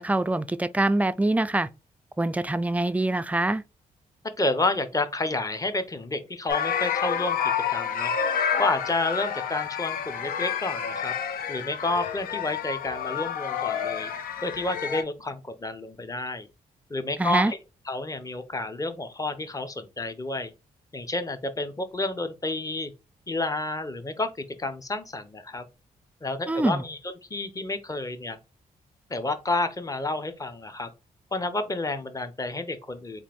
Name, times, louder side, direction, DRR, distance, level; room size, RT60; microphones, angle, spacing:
voice 1, 0.0-1.7 2.2-3.6 17.2-17.5 26.5-26.8, right 2 dB, 10° right, 0.3 m, -24 dB
voice 2, 4.4-7.4 7.7-8.1 8.6-11.1 11.5-14.1 14.4-16.5 16.9-17.6 17.9-20.5 20.9-22.9 23.3-25.6 26.2-27.0 27.3-28.4 29.1-30.9 31.3-33.2, left 2 dB, 25° left, 0.8 m, -30 dB
sound 1, 6.5-15.0, left 7 dB, 90° left, 0.6 m, -29 dB
3.6 x 2.5 x 3.5 m
cardioid pair, 70°, 15 cm